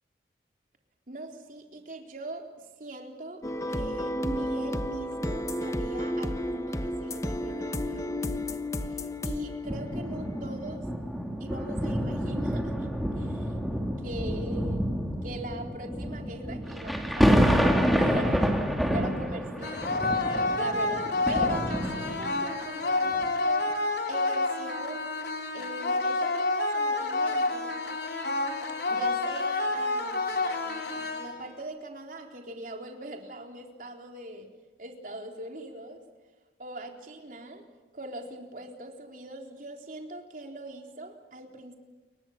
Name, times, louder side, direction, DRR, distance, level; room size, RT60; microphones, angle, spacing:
voice 1, 1.1-3.4 3.7-8.6 8.8-10.9 11.4-12.9 13.2-13.6 14.0-14.9 15.2-20.2 20.5-23.8 24.1-25.1 25.5-27.7 28.9-34.5 34.8-36.0 36.6-37.7 37.9-41.8, right 1 dB, 50° right, 2 dB, 4.0 m, -41 dB
sound 1, 3.4-10.8, left 1 dB, 15° left, 1.0 m, -32 dB
sound 2, 9.6-22.4 23.1-23.3, equal, ahead, 2.7 m, -28 dB
sound 3, 19.6-31.6, left 2 dB, 65° left, 3.4 m, -29 dB
29.5 x 23.5 x 7.4 m, 1.3 s
head